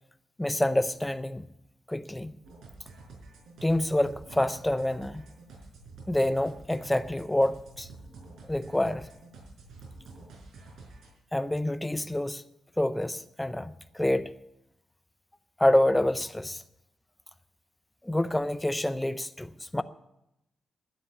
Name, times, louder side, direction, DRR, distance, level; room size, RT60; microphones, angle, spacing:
voice 1, 0.4-1.5 1.9-2.3 3.6-5.3 6.1-7.9 8.5-9.1 11.3-12.4 12.8-14.4 15.6-16.6 18.0-19.8, left 1 dB, 5° left, 0.5 m, -27 dB
sound 1, 2.4-11.1, right 3 dB, 75° right, 4.8 m, -49 dB
12.0 x 9.9 x 8.4 m
wide cardioid pair, 175°, 0 cm